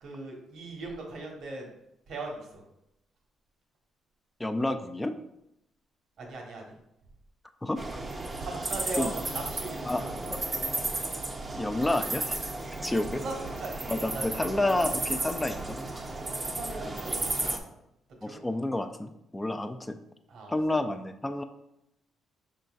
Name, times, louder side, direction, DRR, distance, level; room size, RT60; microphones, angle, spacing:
voice 1, 0.0-1.7 2.1-2.6 6.2-6.7 8.4-10.1 13.0-14.8 16.4-17.6 18.2-18.5 20.3-20.5, right 2 dB, 70° right, 0 dB, 1.2 m, -39 dB
voice 2, 4.4-5.1 7.6-7.8 9.0-9.1 9.8-10.0 10.3-10.4 11.6-12.4 12.8-13.2 13.9-15.8 18.2-20.0 20.5-21.4, left 2 dB, 15° left, 8 dB, 0.4 m, -29 dB
sound 1, 7.8-17.6, right 2 dB, 25° right, 0.6 m, -34 dB
5.5 x 3.8 x 2.4 m, 0.82 s
cardioid pair, 90°, 0 cm